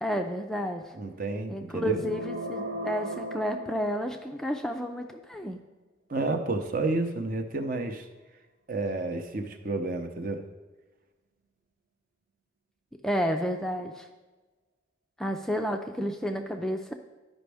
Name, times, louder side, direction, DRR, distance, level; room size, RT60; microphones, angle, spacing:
voice 1, 0.0-0.9 1.5-5.6 13.0-14.1 15.2-16.9, equal, 5° left, 3 dB, 0.4 m, -31 dB
voice 2, 0.9-2.0 6.1-8.1 8.7-10.4, right 2 dB, 45° right, 6 dB, 0.7 m, -30 dB
sound 1, 1.9-4.5, equal, 65° right, 1.2 m, -37 dB
12.0 x 5.2 x 3.4 m, 1.2 s
head